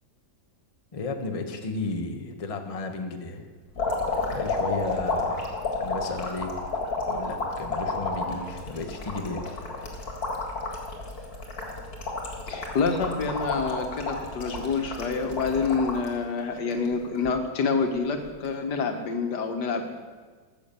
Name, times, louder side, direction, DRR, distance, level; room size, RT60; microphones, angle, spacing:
voice 1, 0.9-3.5 4.3-5.5 5.8-6.6 7.1-9.4, left 3 dB, 25° left, 5 dB, 0.9 m, -33 dB
sound 1, 3.8-16.1 16.6-17.3 18.3-18.5, left 3 dB, 65° left, 2.3 m, -31 dB
voice 2, 12.5-19.9, left 4 dB, 85° left, 5 dB, 1.8 m, -27 dB
14.0 x 7.0 x 6.8 m, 1.4 s
omnidirectional pair, 1.7 m